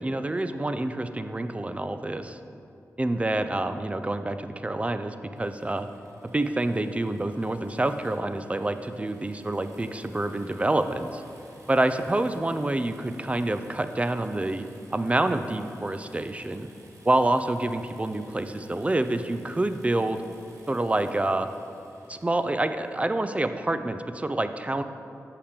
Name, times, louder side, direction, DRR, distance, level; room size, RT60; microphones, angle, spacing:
voice 1, 0.0-2.4 3.0-5.9 6.3-11.2 11.7-14.7 14.9-16.7 17.0-20.2 20.7-21.5 22.1-24.8, right 2 dB, 20° right, 9 dB, 0.4 m, -27 dB
sound 1, 5.3-23.1, right 1 dB, 70° right, 1.1 m, -55 dB
6.7 x 5.5 x 5.1 m, 2.7 s
cardioid pair, 50°, 6 cm